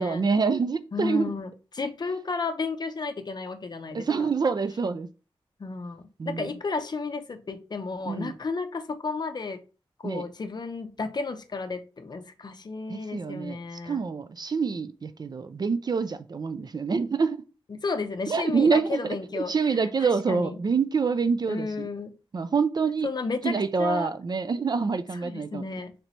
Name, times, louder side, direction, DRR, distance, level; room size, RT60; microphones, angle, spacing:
voice 1, 0.0-1.3 3.9-5.1 6.2-6.5 8.1-8.3 10.0-10.2 12.9-13.6 13.8-17.4 18.3-19.0 19.3-21.9 22.3-23.1 23.4-25.6, right 5 dB, 45° right, 0.3 m, -26 dB
voice 2, 0.9-4.3 5.6-9.6 10.0-14.0 17.7-20.6 21.5-22.1 23.0-24.1 25.2-25.9, left 4 dB, 45° left, 0.5 m, -33 dB
3.2 x 3.0 x 4.0 m
wide cardioid pair, 115°, 10 cm